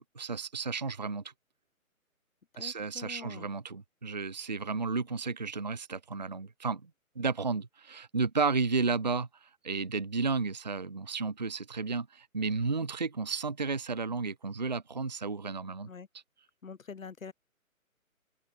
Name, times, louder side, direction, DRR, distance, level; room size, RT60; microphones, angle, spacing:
voice 1, 0.2-1.2 2.6-6.9 7.2-9.3 9.6-15.9, right 4 dB, 30° right, 0.6 m, -32 dB
voice 2, 2.5-3.5 15.8-16.1 16.6-17.3, left 5 dB, 65° left, 4.1 m, -45 dB
open air
hypercardioid pair, 170°, 42 cm